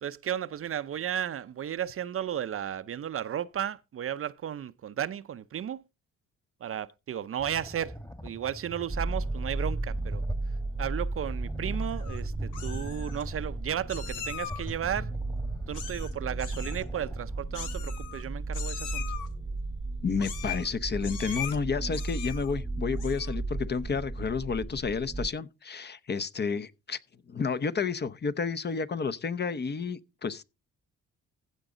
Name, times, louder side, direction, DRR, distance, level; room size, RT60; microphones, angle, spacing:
voice 1, 0.0-5.8 6.6-10.2 10.8-15.1 15.7-19.0, right 9 dB, 50° right, 0.6 m, -34 dB
sound 1, 7.4-17.4, equal, 10° left, 1.5 m, -42 dB
sound 2, 8.9-25.3, right 2 dB, 15° right, 1.0 m, -35 dB
Meow, 11.8-12.2 12.5-13.2 13.9-14.7 15.7-16.1 16.4-16.8 17.5-18.2 18.5-19.3 20.2-20.7 21.0-21.6 21.9-22.5 22.9-23.4, left 9 dB, 90° left, 2.5 m, -40 dB
voice 2, 20.0-27.0 27.3-30.4, left 5 dB, 35° left, 0.9 m, -31 dB
15.5 x 5.3 x 3.8 m
cardioid pair, 90°, 30 cm